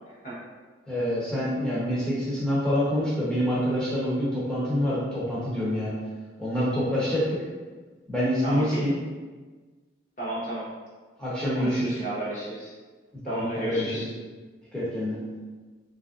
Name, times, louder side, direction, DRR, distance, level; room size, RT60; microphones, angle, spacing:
voice 1, 0.1-0.4 8.4-8.9 10.2-10.7 11.5-12.7 13.2-14.1, right 1 dB, 40° left, -8 dB, 1.0 m, -32 dB
voice 2, 0.9-5.9 6.4-7.3 8.1-9.0 11.2-12.0 13.2-14.0 14.7-15.2, equal, 5° left, -9 dB, 0.8 m, -26 dB
3.3 x 2.5 x 2.4 m, 1.4 s
head